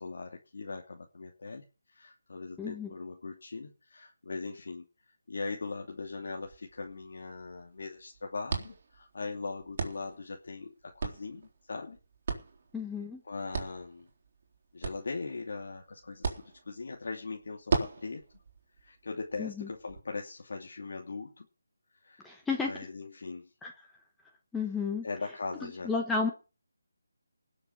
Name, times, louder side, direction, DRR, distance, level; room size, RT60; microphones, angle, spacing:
voice 1, 0.0-12.0 13.2-14.1 14.7-18.2 18.8-21.5 21.9-22.3 22.6-23.5 25.0-25.9, left 4 dB, 55° left, 2 dB, 2.7 m, -40 dB
voice 2, 2.6-2.9 12.7-13.2 19.4-19.7 22.2-22.7 23.6-23.7 24.5-25.1 25.8-26.3, left 4 dB, 5° left, 1 dB, 1.0 m, -32 dB
sound 1, 5.8-20.0, right 4 dB, 35° right, 3.9 m, -39 dB
19.5 x 6.9 x 7.1 m, 0.33 s
figure-of-eight pair, 170°, 0 cm